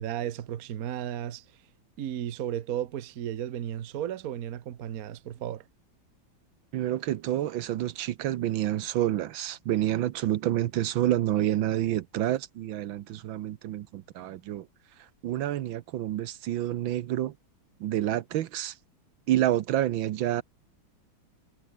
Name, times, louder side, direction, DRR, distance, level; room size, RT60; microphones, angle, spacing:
voice 1, 0.0-1.4 2.0-5.6, right 11 dB, 55° right, 1.3 m, -34 dB
voice 2, 6.7-14.7 15.0-17.3 17.8-18.8 19.3-20.4, right 13 dB, 80° right, 1.6 m, -28 dB
omnidirectional pair, 2.2 m